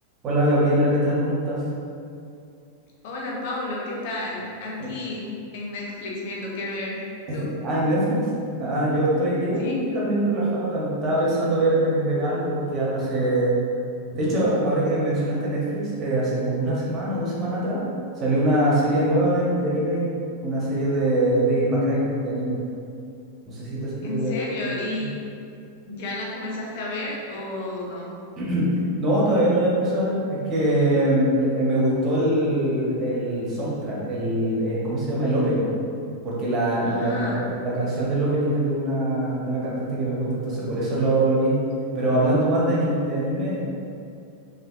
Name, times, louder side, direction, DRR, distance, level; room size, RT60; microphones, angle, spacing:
voice 1, 0.2-1.6 4.8-4.9 7.6-8.2 8.6-13.5 14.1-17.8 18.2-20.1 20.4-22.6 23.4-24.4 24.9-25.0 28.4-28.7 29.0-35.7 36.2-41.6 41.9-43.6, right 1 dB, 30° right, -6 dB, 1.4 m, -23 dB
voice 2, 3.0-7.0 7.3-7.5 9.6-9.8 24.0-25.1 25.9-28.1 36.9-37.5, left 2 dB, 50° left, -3 dB, 1.0 m, -31 dB
5.7 x 3.1 x 2.9 m, 2.5 s
figure-of-eight pair, 90°, 0 cm